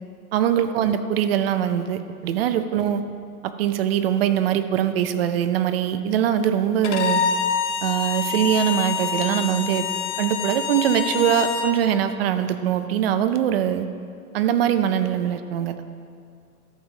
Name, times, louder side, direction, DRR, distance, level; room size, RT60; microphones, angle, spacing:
voice 1, 0.3-3.0 3.4-7.3 7.8-9.9 10.2-13.9 14.3-15.8, right 10 dB, 40° right, 10 dB, 0.6 m, -22 dB
Bowed string instrument, 6.8-11.7, left 7 dB, 50° left, 1.0 m, -26 dB
13.0 x 7.1 x 4.7 m, 2.2 s
hypercardioid pair, 150°, 45 cm